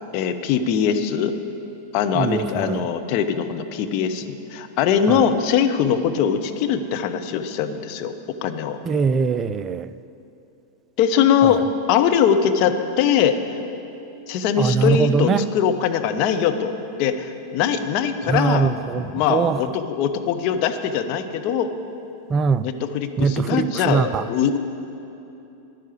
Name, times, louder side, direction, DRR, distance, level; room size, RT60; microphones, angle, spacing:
voice 1, 0.1-1.3 1.9-8.1 8.4-8.8 11.0-11.6 11.9-13.4 14.3-18.7 19.1-21.7 22.6-24.6, left 8 dB, 45° left, 6 dB, 0.9 m, -21 dB
voice 2, 2.1-2.8 5.1-5.3 8.8-9.9 11.4-11.6 14.6-15.5 18.3-19.6 22.3-22.6 23.2-24.3, right 5 dB, 25° right, 14 dB, 0.4 m, -22 dB
12.5 x 10.5 x 8.6 m, 2.8 s
figure-of-eight pair, 90°, 0 cm